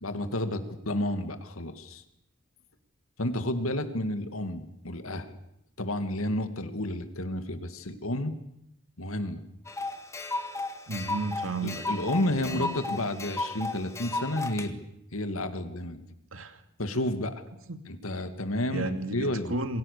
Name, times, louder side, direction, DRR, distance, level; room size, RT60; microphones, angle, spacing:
voice 1, 0.0-2.0 3.2-5.3 5.8-8.3 9.0-9.4 11.6-14.8 15.1-16.1 16.8-17.4 17.9-19.6, left 1 dB, 90° left, 9 dB, 2.3 m, -31 dB
sound 1, 9.7-14.7, left 2 dB, 15° left, 1.8 m, -34 dB
voice 2, 10.9-11.8 12.3-12.7 16.3-16.6 17.7-17.8 18.7-19.8, right 2 dB, 75° right, 8 dB, 2.4 m, -33 dB
27.5 x 23.0 x 6.9 m, 0.80 s
head